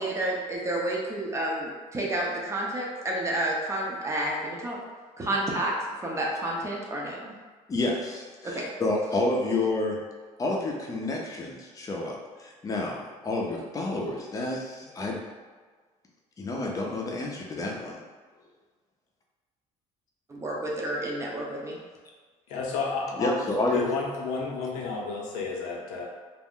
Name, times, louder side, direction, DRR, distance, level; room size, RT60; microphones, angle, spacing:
voice 1, 0.0-4.8 5.2-5.7 6.0-7.3 8.4-8.7 20.3-21.8, right 1 dB, 20° right, -3 dB, 0.6 m, -30 dB
voice 2, 7.7-10.0 10.4-15.2 16.4-18.0 23.2-23.8, left 2 dB, 25° left, -1 dB, 0.5 m, -29 dB
voice 3, 22.5-23.3 23.7-26.0, left 4 dB, 90° left, -1 dB, 0.6 m, -31 dB
2.5 x 2.1 x 3.6 m, 1.4 s
cardioid pair, 120°, 14 cm